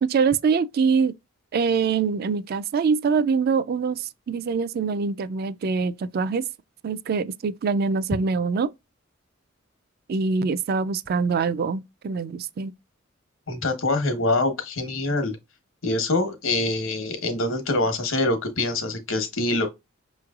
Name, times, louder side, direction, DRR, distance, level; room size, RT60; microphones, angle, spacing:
voice 1, 0.0-1.1 1.5-6.5 6.8-8.7 10.1-12.7, right 5 dB, 50° right, 0.3 m, -24 dB
voice 2, 13.5-15.4 15.8-19.7, left 2 dB, 75° left, 1.1 m, -25 dB
5.9 x 3.1 x 2.3 m
head